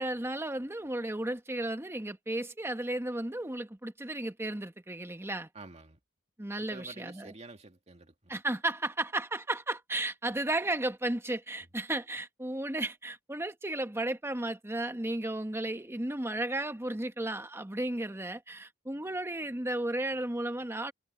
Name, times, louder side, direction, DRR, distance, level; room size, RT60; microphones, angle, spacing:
voice 1, 0.0-5.5 6.4-7.3 8.3-20.9, right 1 dB, 10° right, 1.2 m, -34 dB
voice 2, 5.5-6.0 6.6-8.4, right 3 dB, 35° right, 2.2 m, -49 dB
head